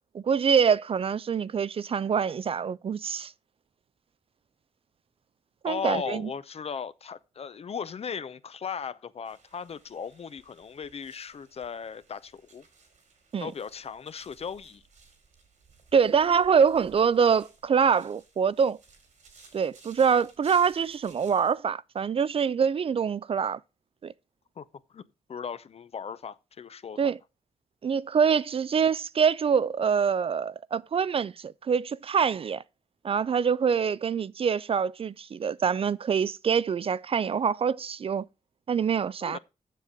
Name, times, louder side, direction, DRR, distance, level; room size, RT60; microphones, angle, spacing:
voice 1, 0.1-3.3 5.6-6.3 13.3-13.5 15.9-18.8 19.5-23.6 24.0-24.1 27.0-27.2 27.8-32.6 33.0-38.2 38.7-39.4, right 6 dB, 50° right, 0.4 m, -25 dB
voice 2, 5.7-12.6 13.4-14.8 24.6-24.7 24.9-25.0 25.3-27.0 39.2-39.4, left 6 dB, 55° left, 0.6 m, -37 dB
sound 1, 9.2-21.5, right 4 dB, 80° right, 2.6 m, -57 dB
7.5 x 6.6 x 5.0 m
supercardioid pair, 50°, 13 cm